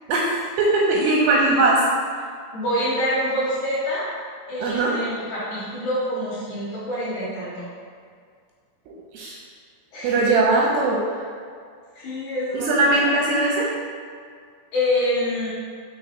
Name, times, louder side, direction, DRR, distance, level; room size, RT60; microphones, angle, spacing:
voice 1, 0.1-1.8 4.6-5.0 9.1-9.4 10.0-11.0 12.5-13.7, right 2 dB, 85° right, -3 dB, 2.6 m, -20 dB
voice 2, 2.5-4.0 4.5-7.5 9.9-10.2 11.9-13.1 14.7-15.5, left 1 dB, 65° left, -9 dB, 2.0 m, -26 dB
6.2 x 3.8 x 4.4 m, 2.1 s
omnidirectional pair, 5.2 m